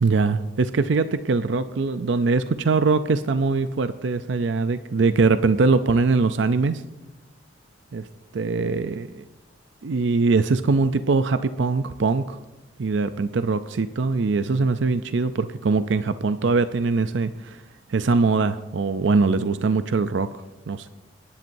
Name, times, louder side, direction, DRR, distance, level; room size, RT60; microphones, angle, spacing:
voice 1, 0.0-6.8 7.9-8.0 8.3-9.2 9.8-12.4 12.8-17.6 17.9-20.3 20.7-20.9, right 4 dB, 75° right, 11 dB, 0.5 m, -22 dB
28.5 x 10.5 x 2.7 m, 1.0 s
head